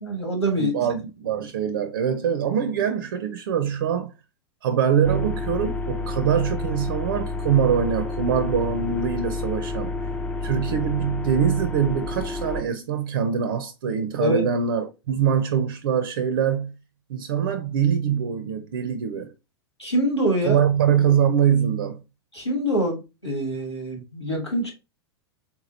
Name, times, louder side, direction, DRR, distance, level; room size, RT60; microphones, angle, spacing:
voice 1, 0.0-0.7 14.2-14.4 19.8-20.6 22.3-24.7, right 1 dB, 85° left, 1.5 m, -25 dB
voice 2, 0.5-4.1 4.6-10.0 10.4-16.8 17.1-19.3 20.4-22.0, right 8 dB, 55° right, 0.4 m, -23 dB
sound 1, 5.0-12.6, left 3 dB, 10° left, 0.3 m, -30 dB
3.6 x 2.9 x 2.7 m
figure-of-eight pair, 90°, 14 cm